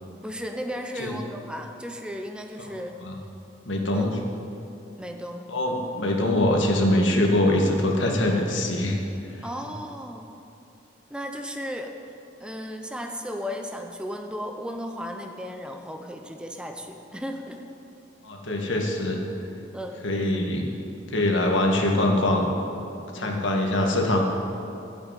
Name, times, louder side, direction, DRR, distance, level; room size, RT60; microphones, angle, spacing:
voice 1, 0.2-2.9 3.9-4.2 5.0-5.5 9.4-10.2 11.1-11.9 12.4-17.6 19.7-20.0 23.2-23.4, equal, 5° right, 4 dB, 0.7 m, -35 dB
voice 2, 3.7-4.2 5.5-9.0 18.2-19.2 20.0-20.7 21.1-22.5 23.1-24.2, left 1 dB, 80° left, 1 dB, 1.9 m, -23 dB
11.0 x 8.3 x 8.9 m, 2.7 s
head